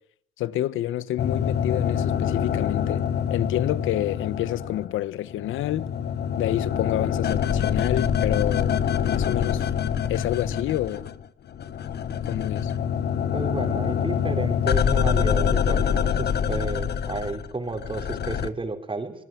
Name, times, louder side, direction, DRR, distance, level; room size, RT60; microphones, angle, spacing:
voice 1, 0.4-3.0 3.3-5.9 6.4-8.8 9.0-9.7 10.1-11.1 12.3-12.7, left 13 dB, 85° left, 1.1 m, -28 dB
sound 1, 1.2-5.0 5.3-11.2 11.5-18.5, left 8 dB, 55° left, 1.3 m, -25 dB
voice 2, 13.3-19.1, right 3 dB, 25° right, 4.4 m, -32 dB
26.5 x 20.0 x 9.2 m
cardioid pair, 90°, 20 cm